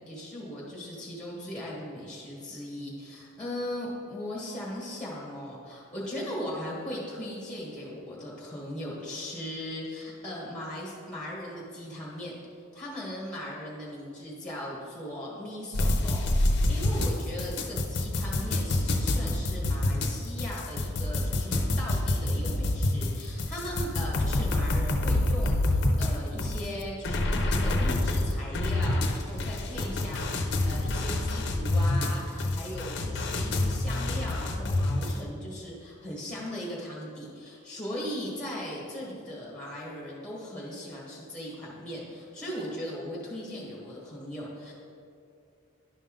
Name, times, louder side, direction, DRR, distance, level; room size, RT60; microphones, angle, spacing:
voice 1, 0.0-12.3 12.7-44.7, left 1 dB, 5° left, -5 dB, 1.5 m, -38 dB
sound 1, 15.7-35.2, left 1 dB, 55° left, 0.7 m, -27 dB
10.5 x 5.4 x 3.8 m, 2.4 s
head